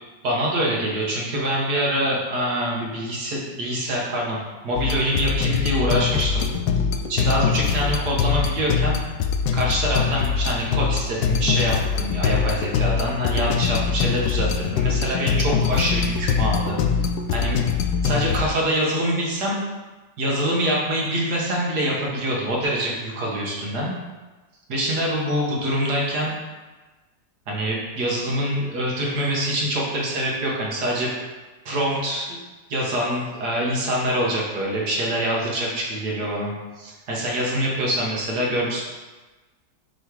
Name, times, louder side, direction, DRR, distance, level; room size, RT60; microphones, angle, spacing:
voice 1, 0.2-4.4 4.6-6.5 7.1-9.0 9.5-16.8 17.3-17.6 18.0-19.6 20.2-23.9 24.7-26.3 27.5-31.1 31.7-32.4 32.7-38.8, equal, 70° right, -3 dB, 1.9 m, -25 dB
sound 1, 4.8-18.5, left 6 dB, 90° left, 1.2 m, -23 dB
7.0 x 3.2 x 4.8 m, 1.2 s
omnidirectional pair, 1.8 m